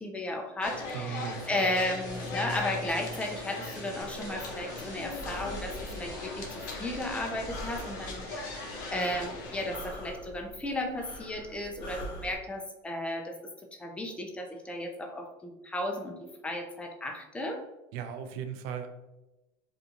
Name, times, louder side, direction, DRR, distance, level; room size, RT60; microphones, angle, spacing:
voice 1, 0.0-8.5 8.9-13.3 13.8-17.6, left 1 dB, 10° left, 2 dB, 0.5 m, -34 dB
sound 1, 0.6-9.8, left 2 dB, 75° left, 0.5 m, -40 dB
voice 2, 0.9-1.6 17.9-18.9, right 8 dB, 70° right, 7 dB, 0.4 m, -37 dB
sound 2, 1.6-9.1, left 1 dB, 40° right, 0.8 m, -46 dB
Breathing, 4.0-12.4, equal, 50° left, 0.9 m, -44 dB
2.7 x 2.4 x 2.5 m, 0.97 s
supercardioid pair, 95°, 10 cm